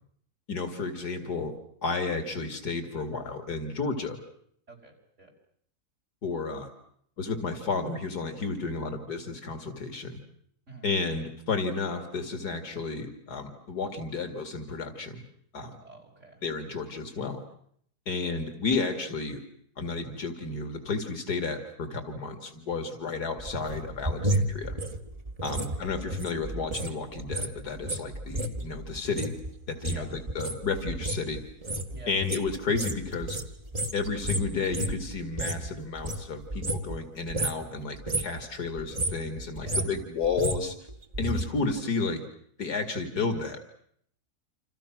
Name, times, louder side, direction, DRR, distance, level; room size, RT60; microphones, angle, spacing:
voice 1, 0.5-1.5 1.8-4.2 6.2-6.7 7.2-10.2 10.8-15.3 15.5-15.7 16.4-17.4 18.1-19.4 19.8-24.8 25.4-29.3 29.7-31.4 32.1-33.4 33.9-40.7 41.2-42.2 42.6-43.6, left 4 dB, 85° left, 7 dB, 2.9 m, -32 dB
voice 2, 4.7-5.3 10.7-10.9 15.8-16.4 25.4-25.9 29.9-30.2 31.9-32.2 39.6-39.9, right 3 dB, 50° right, 1 dB, 5.9 m, -47 dB
sound 1, 23.4-26.9 27.2-35.7 36.0-37.0 37.3-37.7 37.9-38.4 38.8-41.4 41.7-41.8, right 1 dB, 25° right, 1.5 m, -32 dB
28.0 x 27.5 x 6.1 m, 0.66 s
omnidirectional pair, 1.6 m